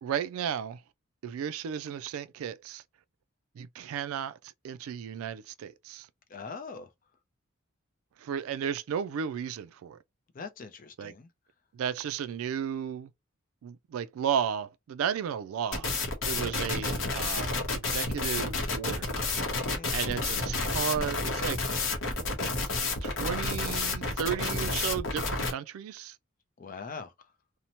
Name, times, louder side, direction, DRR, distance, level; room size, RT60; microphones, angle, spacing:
voice 1, 0.0-0.8 1.2-2.8 3.6-4.4 4.6-6.1 8.2-10.0 11.0-11.1 11.7-13.1 13.6-15.9 16.3-19.1 19.9-21.6 23.0-26.2, right 8 dB, 80° right, 0.3 m, -34 dB
voice 2, 6.3-6.9 10.3-11.3 19.7-20.1 26.6-27.1, left 5 dB, 40° left, 0.4 m, -42 dB
sound 1, 15.7-25.5, left 3 dB, 60° left, 0.8 m, -30 dB
2.7 x 2.1 x 2.8 m
head